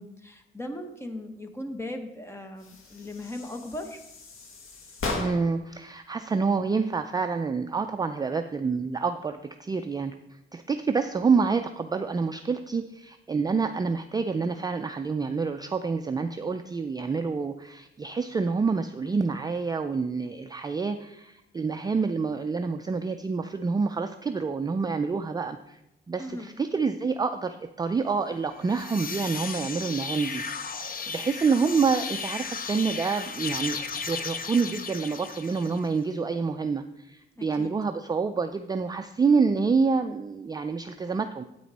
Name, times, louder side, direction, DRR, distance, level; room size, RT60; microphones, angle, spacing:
voice 1, 0.0-4.0 26.2-26.5 37.4-37.8, left 1 dB, 10° left, 6 dB, 1.0 m, -38 dB
sound 1, 2.6-5.7, left 3 dB, 80° left, 1.5 m, -37 dB
voice 2, 5.1-10.1 10.5-25.8 26.1-33.8 34.1-41.4, right 4 dB, 20° right, 7 dB, 0.3 m, -27 dB
sound 2, 28.5-36.0, left 5 dB, 45° left, 0.7 m, -35 dB
9.3 x 8.5 x 4.1 m, 0.88 s
wide cardioid pair, 150°, 21 cm